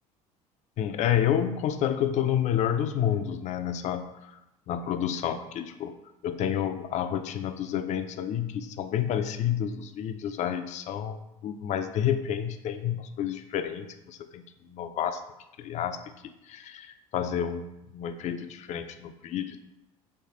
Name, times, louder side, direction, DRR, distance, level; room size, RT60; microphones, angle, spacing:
voice 1, 0.8-4.1 4.7-5.9 6.2-15.2 15.6-19.6, left 9 dB, 40° left, 9 dB, 0.4 m, -30 dB
3.3 x 3.1 x 2.9 m, 0.90 s
hypercardioid pair, 65°, 19 cm